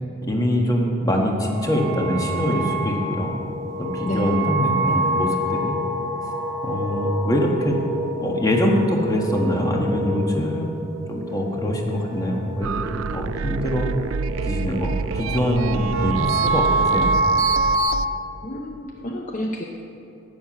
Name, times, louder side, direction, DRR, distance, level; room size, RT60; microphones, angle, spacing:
voice 1, 0.2-3.3 3.8-5.7 6.6-7.8 8.2-10.7 11.1-13.9 14.4-17.1, equal, 15° left, 0 dB, 1.5 m, -23 dB
sound 1, 1.4-17.8, right 2 dB, 15° right, 1.4 m, -27 dB
sound 2, 12.6-18.1, right 6 dB, 65° right, 0.4 m, -28 dB
voice 2, 18.4-19.6, left 1 dB, 35° left, 1 dB, 0.7 m, -29 dB
11.0 x 9.5 x 7.6 m, 2.8 s
head